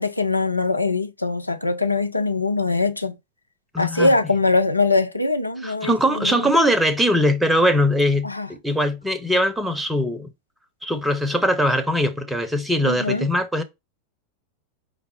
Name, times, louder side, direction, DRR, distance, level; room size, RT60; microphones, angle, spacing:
voice 1, 0.0-3.2 3.8-6.5 8.2-8.5 12.8-13.3, left 3 dB, 85° left, 0.5 m, -22 dB
voice 2, 3.7-4.1 5.6-10.3 10.8-13.6, equal, 5° right, 0.7 m, -21 dB
5.2 x 2.0 x 4.5 m
figure-of-eight pair, 90°, 0 cm